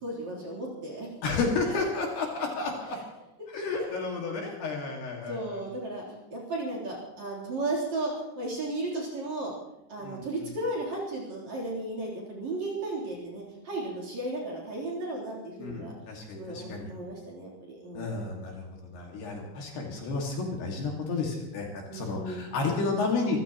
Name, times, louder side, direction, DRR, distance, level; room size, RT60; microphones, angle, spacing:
voice 1, 0.0-1.1 2.9-3.0 3.8-4.0 5.3-6.0 6.3-9.5 9.9-15.9 16.3-18.2 21.9-22.5, right 2 dB, 40° right, -2 dB, 4.3 m, -35 dB
voice 2, 1.2-3.0 3.5-5.6 10.0-10.5 15.6-16.9 17.9-18.7 18.9-23.4, left 3 dB, 60° left, -1 dB, 3.9 m, -31 dB
26.5 x 15.0 x 3.1 m, 0.90 s
omnidirectional pair, 5.8 m